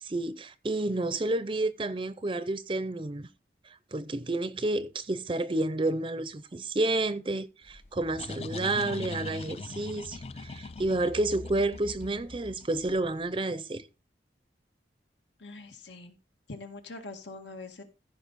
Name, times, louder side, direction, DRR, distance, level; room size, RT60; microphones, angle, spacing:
voice 1, 0.0-3.3 3.9-13.8, right 2 dB, 30° right, 0.5 m, -30 dB
sound 1, 7.7-13.2, left 3 dB, 35° left, 0.4 m, -41 dB
voice 2, 15.4-16.2 16.5-17.8, left 3 dB, 85° left, 1.9 m, -43 dB
14.5 x 5.3 x 4.1 m
head